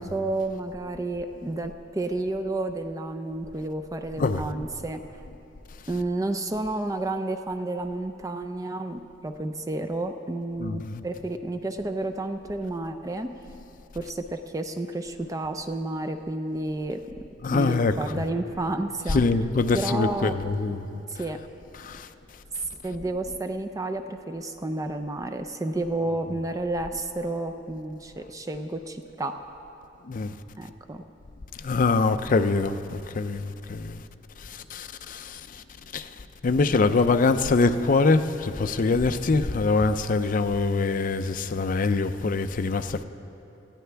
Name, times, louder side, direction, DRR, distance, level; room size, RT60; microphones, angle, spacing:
voice 1, 0.0-5.0 5.9-13.3 13.9-17.0 17.5-19.2 19.7-20.4 21.1-21.4 22.8-29.4 30.6-31.0, right 2 dB, 20° right, 0.4 m, -31 dB
voice 2, 10.6-11.0 17.4-18.2 19.1-21.0 21.8-22.1 30.1-30.3 31.6-34.0 34.7-35.4 35.9-36.0 36.4-43.0, left 3 dB, 45° left, 0.5 m, -24 dB
19.0 x 14.0 x 3.4 m
head